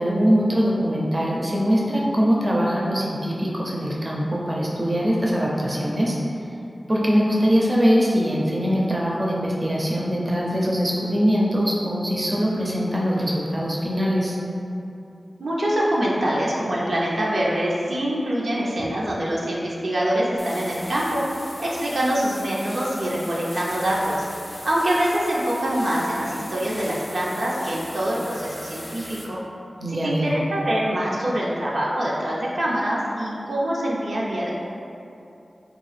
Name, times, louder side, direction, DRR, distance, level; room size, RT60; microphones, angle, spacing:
voice 1, 0.0-6.2 6.9-14.3 29.8-30.4, equal, 35° right, -4 dB, 0.5 m, -22 dB
voice 2, 15.4-21.2 21.6-29.4 29.9-34.5, right 1 dB, 85° right, -6 dB, 0.5 m, -24 dB
sound 1, 20.4-29.2, equal, 15° left, 0.5 m, -39 dB
3.6 x 2.4 x 3.2 m, 2.7 s
wide cardioid pair, 60°, 0 cm